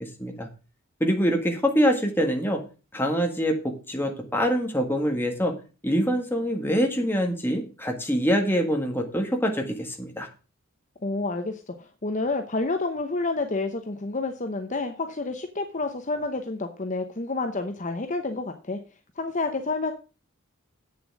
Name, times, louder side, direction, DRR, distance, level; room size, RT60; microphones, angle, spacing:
voice 1, 1.0-2.6 2.9-5.5 5.8-10.3, equal, 10° left, 3 dB, 1.7 m, -25 dB
voice 2, 11.0-18.8 19.2-19.9, left 3 dB, 35° left, 6 dB, 0.8 m, -29 dB
8.3 x 7.0 x 6.1 m, 0.34 s
head